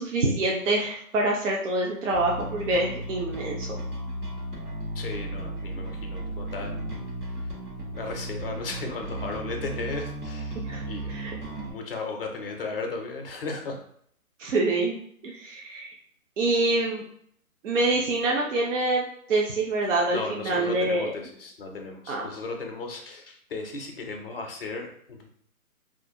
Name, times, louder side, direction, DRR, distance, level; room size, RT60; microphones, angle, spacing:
voice 1, 0.0-3.8 10.7-10.8 11.1-11.3 14.4-15.0 15.2-15.9 16.4-17.0 17.6-21.1 22.1-22.3, right 2 dB, 60° right, -1 dB, 0.5 m, -26 dB
Bass guitar, 2.1-11.7, right 1 dB, 80° right, 1.1 m, -35 dB
voice 2, 5.0-7.3 7.9-11.1 11.5-13.8 20.1-25.3, left 3 dB, 40° left, 3 dB, 0.4 m, -36 dB
2.5 x 2.0 x 2.6 m, 0.66 s
hypercardioid pair, 145°, 45 cm